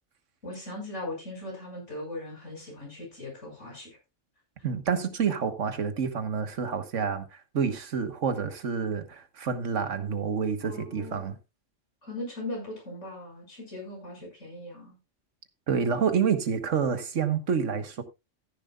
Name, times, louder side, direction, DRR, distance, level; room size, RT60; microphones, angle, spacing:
voice 1, 0.4-4.0 10.6-11.3 12.0-14.9, left 1 dB, 80° left, 6.2 m, -39 dB
voice 2, 4.6-11.4 15.7-18.0, right 6 dB, 90° right, 1.6 m, -28 dB
14.5 x 10.5 x 2.4 m
omnidirectional pair, 1.3 m